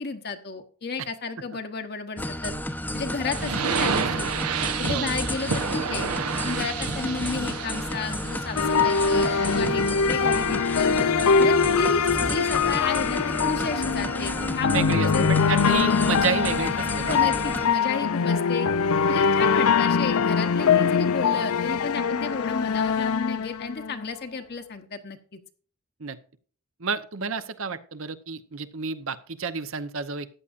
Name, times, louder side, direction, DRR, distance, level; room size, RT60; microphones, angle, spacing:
voice 1, 0.0-2.5 2.9-4.3 4.8-6.1 6.4-10.9 11.4-15.2 17.1-18.7 19.1-25.4, left 4 dB, 45° left, 6 dB, 1.0 m, -32 dB
sound 1, 2.2-17.7, left 1 dB, 10° left, 0.7 m, -32 dB
sound 2, 3.3-10.0, right 6 dB, 90° right, 1.0 m, -30 dB
sound 3, 8.6-24.1, left 6 dB, 75° left, 0.5 m, -23 dB
voice 2, 14.7-17.2 26.0-26.2 26.8-30.3, right 5 dB, 60° right, 12 dB, 0.9 m, -30 dB
14.5 x 9.8 x 2.5 m, 0.43 s
head